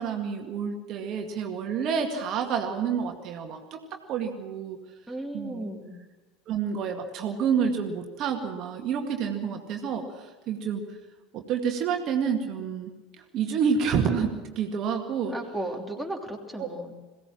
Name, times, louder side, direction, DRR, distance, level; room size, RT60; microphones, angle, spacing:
voice 1, 0.0-3.8 4.1-4.8 5.3-5.7 6.5-10.8 11.3-12.9 13.2-15.4 16.6-16.7, right 6 dB, 45° right, 3 dB, 2.0 m, -29 dB
voice 2, 5.1-5.9 15.3-16.9, right 1 dB, ahead, 3 dB, 3.0 m, -35 dB
22.0 x 17.0 x 7.4 m, 1.2 s
figure-of-eight pair, 75°, 0 cm